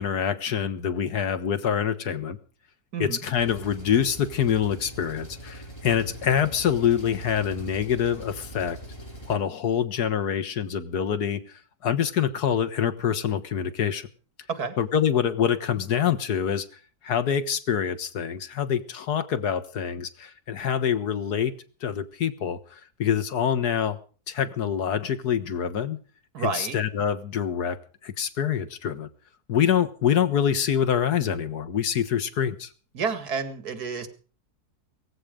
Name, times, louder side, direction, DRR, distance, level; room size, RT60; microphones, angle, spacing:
voice 1, 0.0-2.4 3.0-8.8 9.3-11.4 11.8-14.0 14.8-16.7 17.0-21.5 21.8-22.6 23.0-24.0 24.3-26.0 26.4-27.8 28.0-29.1 29.5-32.7, left 8 dB, 85° left, 11 dB, 1.9 m, -25 dB
voice 2, 2.9-3.2 14.5-14.7 26.3-26.8 32.9-34.1, right 5 dB, 80° right, 11 dB, 2.4 m, -30 dB
Engine, 3.3-9.3, equal, 15° left, 3.7 m, -42 dB
18.0 x 15.5 x 5.1 m, 0.39 s
omnidirectional pair, 1.6 m